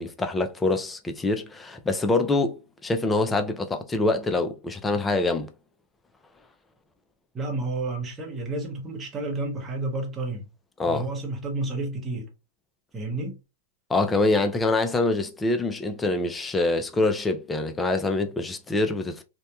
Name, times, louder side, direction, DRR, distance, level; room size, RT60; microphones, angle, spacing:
voice 1, 0.0-5.5 10.8-11.1 13.9-19.2, left 2 dB, 10° left, 0.3 m, -25 dB
voice 2, 7.3-10.5 10.8-12.3 12.9-13.4, right 2 dB, 20° right, 0.7 m, -31 dB
2.7 x 2.1 x 2.2 m
hypercardioid pair, 125°, 0 cm